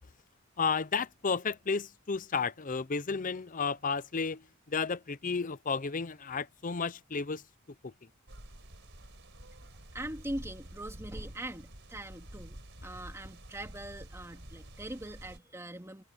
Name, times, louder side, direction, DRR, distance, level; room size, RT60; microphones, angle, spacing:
voice 1, 0.6-7.4 7.8-7.9, left 5 dB, 35° left, 0.6 m, -32 dB
sound 1, 8.3-15.4, right 1 dB, 55° right, 4.6 m, -48 dB
voice 2, 9.9-16.0, right 1 dB, 10° right, 2.9 m, -42 dB
head